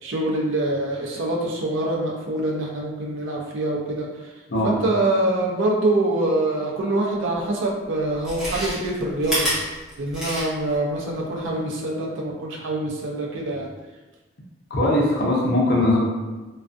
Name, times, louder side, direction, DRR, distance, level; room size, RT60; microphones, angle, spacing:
voice 1, 0.0-4.1 4.6-9.5 10.0-13.7, right 2 dB, 75° right, -2 dB, 0.5 m, -25 dB
voice 2, 4.5-4.8 14.7-16.0, left 1 dB, 55° left, -4 dB, 0.6 m, -20 dB
Chewing mastication, 7.3-7.4 8.1-10.8 11.1-11.2, equal, 5° right, 0.8 m, -28 dB
2.4 x 2.3 x 2.4 m, 1.2 s
head